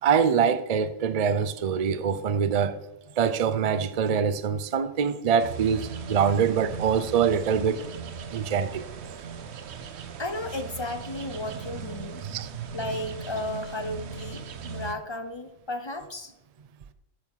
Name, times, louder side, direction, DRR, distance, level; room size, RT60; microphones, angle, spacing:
voice 1, 0.0-2.8 3.2-7.9 8.3-8.9 12.2-12.5, right 7 dB, 85° right, 0.3 m, -24 dB
sound 1, 5.4-14.9, right 6 dB, 55° right, 0.9 m, -38 dB
voice 2, 10.2-12.2 12.7-16.3, left 2 dB, 25° left, 0.6 m, -34 dB
9.1 x 6.3 x 7.3 m
omnidirectional pair, 1.5 m